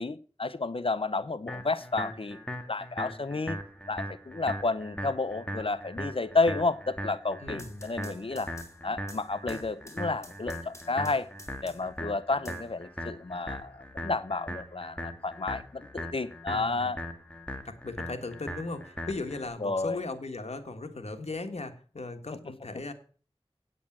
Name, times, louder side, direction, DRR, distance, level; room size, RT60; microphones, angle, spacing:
voice 1, 0.0-2.4 2.7-3.6 3.9-8.5 8.8-11.3 11.6-17.0 19.6-20.0, left 3 dB, 60° left, 15 dB, 0.7 m, -31 dB
sound 1, 1.5-19.5, equal, 10° left, 1.9 m, -39 dB
voice 2, 7.4-7.8 16.5-16.9 17.6-22.9, left 3 dB, 85° left, 7 dB, 1.4 m, -37 dB
sound 2, 7.4-12.0 12.4-13.4, left 1 dB, 25° left, 2.4 m, -52 dB
8.8 x 8.4 x 7.3 m, 0.42 s
wide cardioid pair, 45°, 11 cm